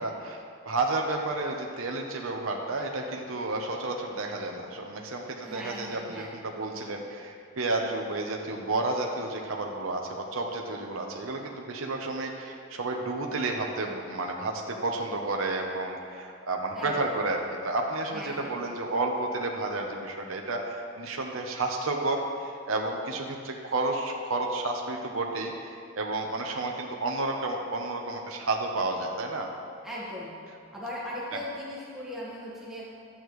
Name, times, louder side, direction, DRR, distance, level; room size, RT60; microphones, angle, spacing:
voice 1, 0.0-29.5, right 2 dB, 70° right, 1 dB, 0.8 m, -31 dB
voice 2, 5.4-6.3 16.7-17.0 18.1-18.5 29.8-30.3 30.7-32.9, left 1 dB, ahead, -7 dB, 1.5 m, -38 dB
12.0 x 8.6 x 3.2 m, 2.2 s
head